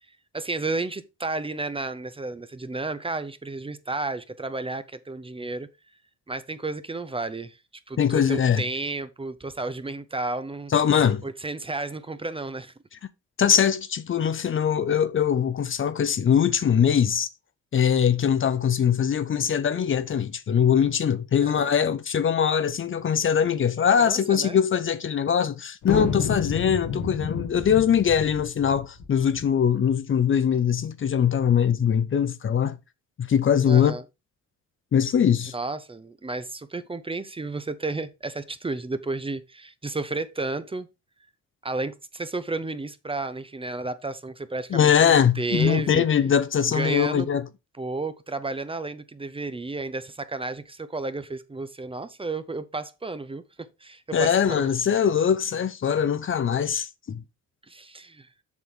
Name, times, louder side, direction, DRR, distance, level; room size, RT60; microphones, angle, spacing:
voice 1, 0.3-5.7 6.3-7.6 7.9-10.7 11.2-12.7 21.4-21.7 24.0-24.6 33.7-34.0 35.5-40.9 41.6-46.1 46.7-47.3 47.8-54.7 57.7-58.3, right 3 dB, 20° right, 0.8 m, -32 dB
voice 2, 8.0-8.6 10.7-11.2 13.4-17.3 17.7-32.8 33.2-34.0 34.9-35.5 44.7-47.4 54.1-57.2, left 8 dB, 45° left, 0.7 m, -22 dB
sound 1, 25.8-29.5, left 6 dB, 75° left, 1.7 m, -30 dB
7.3 x 6.2 x 3.7 m
cardioid pair, 90°, 30 cm